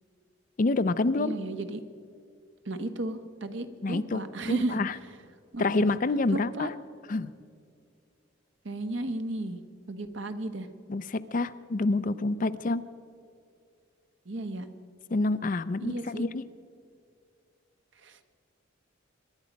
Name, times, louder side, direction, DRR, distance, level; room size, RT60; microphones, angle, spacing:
voice 1, 0.6-1.3 3.8-4.9 5.6-6.7 7.1-7.3 10.9-12.8 15.1-16.4, left 2 dB, 40° left, 14 dB, 0.5 m, -27 dB
voice 2, 1.2-1.8 2.6-4.8 5.5-5.9 6.3-6.7 8.6-9.6 9.9-10.7 14.2-14.7 15.8-16.2 18.0-18.2, right 1 dB, 65° right, 9 dB, 1.1 m, -34 dB
23.5 x 11.5 x 5.2 m, 2.3 s
head